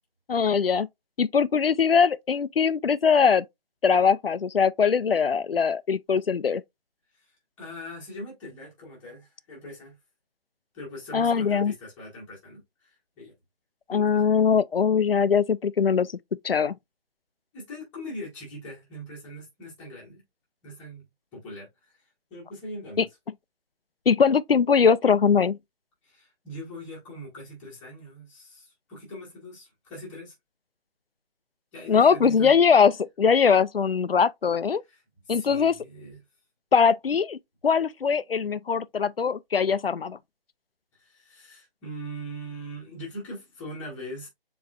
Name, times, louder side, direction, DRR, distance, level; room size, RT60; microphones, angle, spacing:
voice 1, 0.3-0.9 1.2-3.4 3.8-6.6 11.1-11.7 13.9-16.1 16.4-16.8 23.0-23.1 24.1-25.6 31.9-34.8 35.3-35.7 36.7-37.4 37.6-40.2, left 6 dB, 70° left, 0.5 m, -21 dB
voice 2, 7.6-10.0 10.7-13.3 13.9-14.4 17.5-20.2 20.6-22.0 22.3-23.1 26.0-30.3 31.7-32.5 34.9-35.0 35.3-36.2 40.9-44.3, equal, 5° left, 1.2 m, -41 dB
7.1 x 3.1 x 2.4 m
figure-of-eight pair, 155°, 30 cm